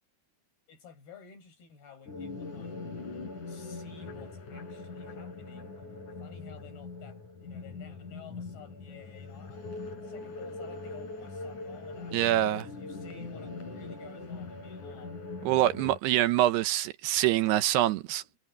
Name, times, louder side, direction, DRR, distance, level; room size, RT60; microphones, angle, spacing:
voice 1, 0.7-3.0 3.4-5.8 6.2-15.2 18.2-18.4, left 7 dB, 65° left, 8.1 m, -53 dB
sound 1, 2.1-16.0, left 3 dB, 50° left, 5.3 m, -41 dB
voice 2, 12.1-12.6 15.4-18.2, right 14 dB, 75° right, 2.9 m, -25 dB
omnidirectional pair, 4.9 m